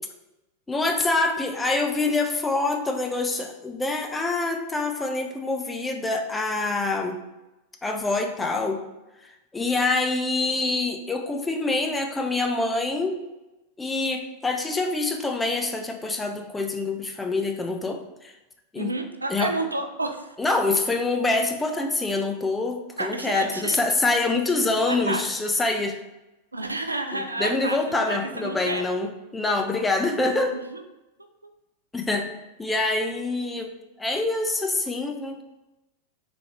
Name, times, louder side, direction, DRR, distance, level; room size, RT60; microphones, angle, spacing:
voice 1, 0.7-7.2 7.8-8.8 9.5-13.2 13.8-18.0 18.7-18.9 19.3-19.5 20.4-26.0 27.1-30.6 31.9-32.3 32.6-33.7 34.0-35.4, left 3 dB, 10° left, 4 dB, 0.5 m, -25 dB
voice 2, 18.8-20.4 23.0-23.8 24.9-25.2 26.5-28.8 30.5-30.8, right 2 dB, 80° right, 6 dB, 0.3 m, -30 dB
3.8 x 3.5 x 2.9 m, 0.99 s
figure-of-eight pair, 90°, 0 cm